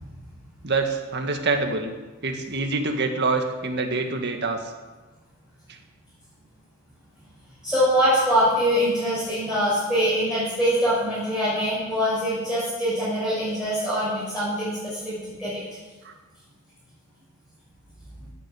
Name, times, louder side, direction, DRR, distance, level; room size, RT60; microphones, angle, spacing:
voice 1, 0.6-1.9 2.2-4.7 5.7-5.8 16.0-16.2, right 3 dB, 55° right, 4 dB, 1.9 m, -26 dB
voice 2, 7.6-15.6, equal, 5° right, -11 dB, 6.2 m, -23 dB
17.5 x 8.8 x 7.7 m, 1.2 s
head